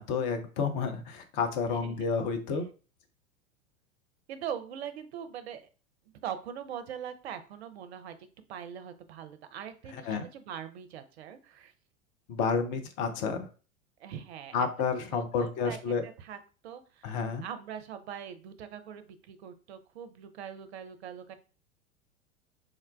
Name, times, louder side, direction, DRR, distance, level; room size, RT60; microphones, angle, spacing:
voice 1, 0.0-2.6 10.1-10.3 12.3-13.5 14.5-16.0 17.0-17.4, left 5 dB, 25° left, 6 dB, 0.4 m, -30 dB
voice 2, 1.7-2.1 4.3-5.6 6.2-8.2 8.5-11.7 14.0-14.7 15.1-17.1 17.4-21.3, right 9 dB, 50° right, 10 dB, 0.5 m, -42 dB
4.6 x 2.1 x 2.3 m, 0.36 s
figure-of-eight pair, 90°, 41 cm